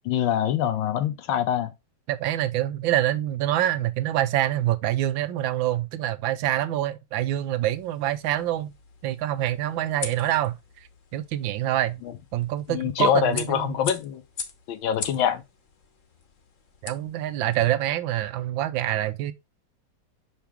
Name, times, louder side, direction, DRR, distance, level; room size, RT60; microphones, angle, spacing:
voice 1, 0.0-1.7 12.7-14.2 14.7-15.4, left 9 dB, 80° left, 1.5 m, -24 dB
voice 2, 2.1-8.7 9.0-12.0 12.3-13.7 16.8-19.3, right 12 dB, 80° right, 1.3 m, -26 dB
sound 1, 7.8-17.7, left 5 dB, 50° left, 1.1 m, -41 dB
5.8 x 5.0 x 3.5 m
omnidirectional pair, 2.2 m